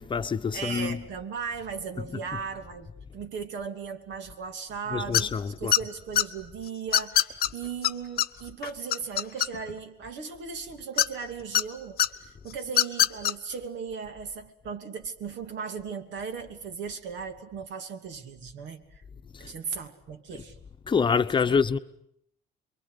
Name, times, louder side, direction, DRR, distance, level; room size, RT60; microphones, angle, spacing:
voice 1, 0.0-1.0 4.9-5.7 19.3-19.5 20.9-21.8, left 5 dB, 25° left, 1.0 m, -26 dB
voice 2, 0.5-19.0 19.4-20.6 21.5-21.6, right 6 dB, 75° right, 2.9 m, -37 dB
sound 1, 5.1-5.4 5.7-6.2 6.9-7.5 7.8-7.9 8.2-8.3 8.6-9.8 11.0-11.6 12.0-12.1 12.7-13.3, left 11 dB, 55° left, 1.0 m, -22 dB
27.5 x 23.0 x 8.4 m
cardioid pair, 125°, 19 cm